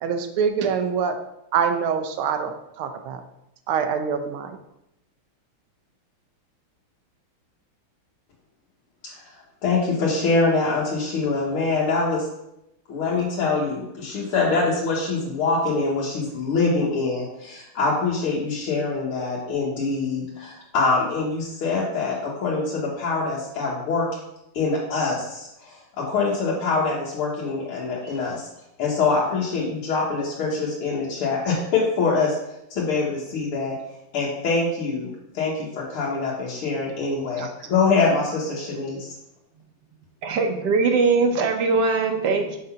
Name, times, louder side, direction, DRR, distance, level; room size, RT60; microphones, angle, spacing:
voice 1, 0.0-1.1 1.5-3.2 3.7-4.6, right 6 dB, 80° right, 7 dB, 1.6 m, -25 dB
voice 2, 9.0-9.4 9.6-12.2 12.9-24.1 24.5-28.5 28.8-32.4 32.7-33.8 34.1-35.1 35.3-39.1, left 4 dB, 85° left, -6 dB, 2.2 m, -24 dB
voice 3, 40.2-42.6, right 4 dB, 60° right, 5 dB, 1.3 m, -21 dB
6.6 x 3.9 x 5.6 m, 0.85 s
omnidirectional pair, 2.3 m